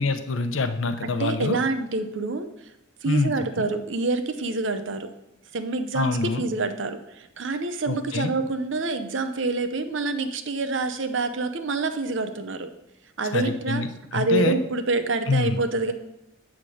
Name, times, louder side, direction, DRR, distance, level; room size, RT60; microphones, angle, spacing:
voice 1, 0.0-1.6 3.0-3.6 5.9-6.4 7.9-8.3 13.3-13.9 14.1-14.5 15.3-15.6, left 3 dB, 90° left, 8 dB, 0.7 m, -25 dB
voice 2, 1.0-2.5 3.0-5.1 5.5-12.7 13.2-13.8 14.1-15.9, right 3 dB, 80° right, 9 dB, 0.7 m, -27 dB
8.4 x 3.7 x 6.3 m, 0.86 s
head